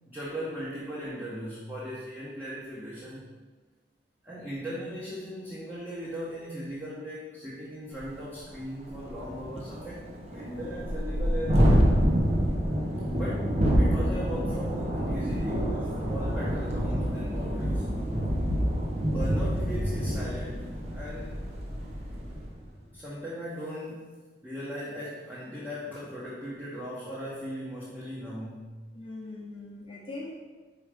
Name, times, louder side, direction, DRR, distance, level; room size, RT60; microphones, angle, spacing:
voice 1, 0.1-3.2 4.2-11.7 13.1-17.9 19.1-21.4 22.9-24.2 24.4-28.8, equal, 10° right, -8 dB, 1.0 m, -38 dB
Thunderstorm, 8.0-8.1 8.5-8.6 8.9-22.5, equal, 40° right, 1.0 m, -27 dB
sound 1, 15.8-22.5, equal, 85° right, 1.9 m, -40 dB
voice 2, 28.9-30.3, left 2 dB, 30° left, -4 dB, 1.0 m, -41 dB
4.9 x 4.6 x 5.0 m, 1.3 s
head